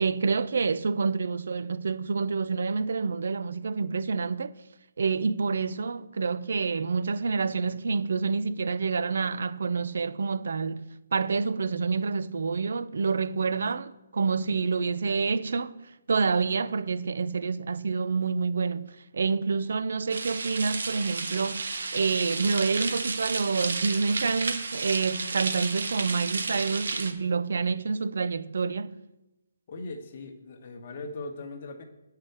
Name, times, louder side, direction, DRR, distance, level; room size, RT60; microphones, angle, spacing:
voice 1, 0.0-4.5 5.0-10.8 11.1-15.8 16.1-29.0, right 4 dB, 50° right, 0.5 m, -28 dB
sound 1, 20.1-27.1, right 3 dB, 70° right, 1.2 m, -32 dB
voice 2, 29.7-31.8, left 2 dB, 30° left, 1.1 m, -39 dB
8.8 x 5.7 x 7.9 m
hypercardioid pair, 180°, 0 cm